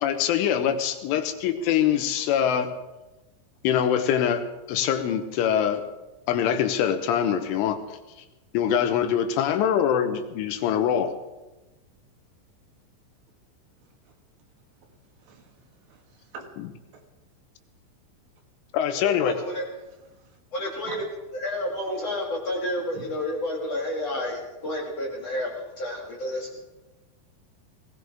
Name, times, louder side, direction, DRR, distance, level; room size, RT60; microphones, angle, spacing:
voice 1, 0.0-2.7 3.6-5.9 6.3-7.8 8.5-11.1 18.7-19.4, left 9 dB, 80° left, 8 dB, 3.5 m, -24 dB
voice 2, 15.2-15.6 15.9-16.5 16.9-17.0 20.1-20.4 20.8-21.0 22.9-23.1, right 5 dB, 70° right, 2 dB, 3.7 m, -44 dB
voice 3, 19.0-19.6 20.5-21.0 21.3-26.5, left 1 dB, 45° left, -2 dB, 2.2 m, -30 dB
20.0 x 17.0 x 3.5 m, 1.1 s
omnidirectional pair, 5.5 m